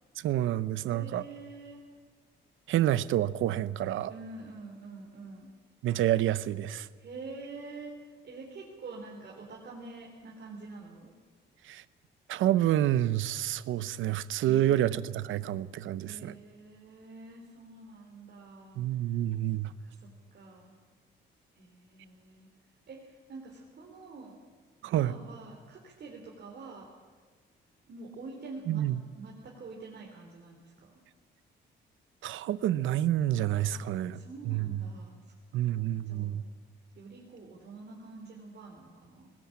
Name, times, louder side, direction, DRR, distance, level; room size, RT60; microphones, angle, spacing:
voice 1, 0.2-1.2 2.7-4.1 5.8-6.9 11.7-11.8 12.3-16.3 18.8-19.7 24.8-25.1 28.7-29.0 32.2-34.2 34.4-34.8 35.5-36.4, right 12 dB, 80° right, 17 dB, 0.8 m, -28 dB
voice 2, 0.8-1.8 4.1-5.5 7.0-11.1 16.0-18.8 19.8-20.8 21.5-22.5 22.9-24.4 24.9-26.9 27.9-28.8 29.1-31.0 33.7-33.9 34.1-35.3 35.6-36.5 36.9-39.3, right 3 dB, 55° right, -2 dB, 3.7 m, -46 dB
19.0 x 17.5 x 8.6 m, 1.5 s
cardioid pair, 90°, 20 cm